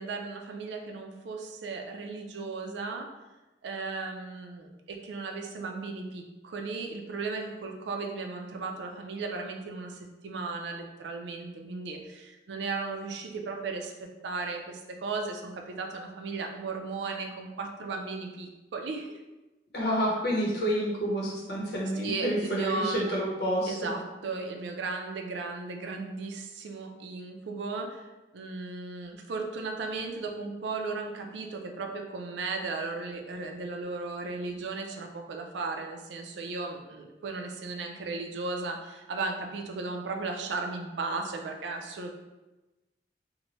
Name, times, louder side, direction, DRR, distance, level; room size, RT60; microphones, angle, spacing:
voice 1, 0.0-3.1 3.6-19.2 22.0-23.0 23.7-28.1 28.3-42.1, right 3 dB, 90° right, 3 dB, 0.4 m, -36 dB
voice 2, 19.7-23.9, equal, 70° left, -4 dB, 0.8 m, -29 dB
3.0 x 2.1 x 2.9 m, 1.1 s
head